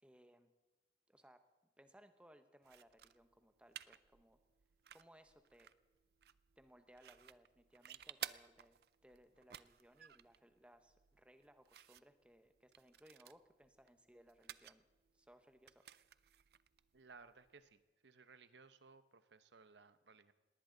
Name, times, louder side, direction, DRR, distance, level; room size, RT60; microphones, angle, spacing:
voice 1, 0.0-0.5 1.1-1.4 1.8-4.4 4.9-5.7 6.6-14.8 15.1-15.8, equal, 5° right, 8 dB, 1.0 m, -65 dB
sound 1, 2.6-17.8, right 11 dB, 60° right, 0.4 m, -56 dB
voice 2, 16.9-20.3, right 4 dB, 85° right, 12 dB, 0.9 m, -61 dB
19.0 x 19.0 x 3.9 m, 1.1 s
head